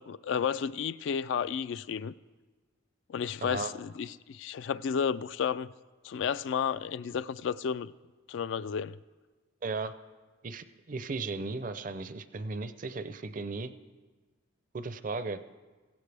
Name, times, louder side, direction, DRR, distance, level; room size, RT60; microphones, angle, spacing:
voice 1, 0.0-2.1 3.1-5.7 6.0-7.9 8.3-9.0, left 7 dB, 65° left, 0.3 m, -32 dB
voice 2, 3.4-3.7 9.6-9.9 10.4-13.7 14.7-15.4, right 3 dB, 40° right, 0.5 m, -36 dB
16.5 x 15.5 x 3.4 m
head